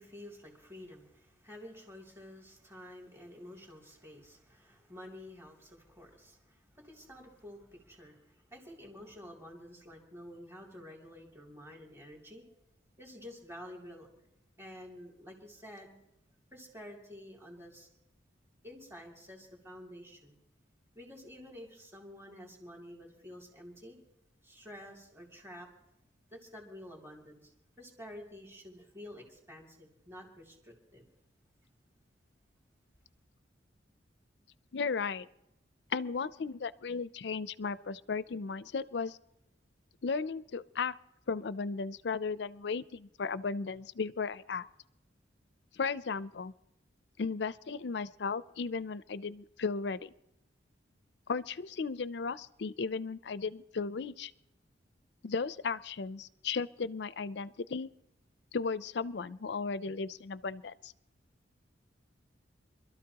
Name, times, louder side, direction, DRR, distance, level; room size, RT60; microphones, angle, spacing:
voice 1, 0.0-12.4 13.0-14.1 14.6-16.0 16.5-17.9 18.6-20.4 20.9-24.0 24.4-25.7 26.3-31.1, left 1 dB, 15° right, 0 dB, 2.9 m, -50 dB
voice 2, 34.7-35.3 35.9-39.2 40.0-40.9 41.3-44.6 45.7-46.5 47.2-50.1 51.3-54.3 55.2-57.9 58.5-60.9, left 5 dB, 65° left, 17 dB, 0.5 m, -35 dB
26.0 x 13.0 x 2.9 m, 0.84 s
head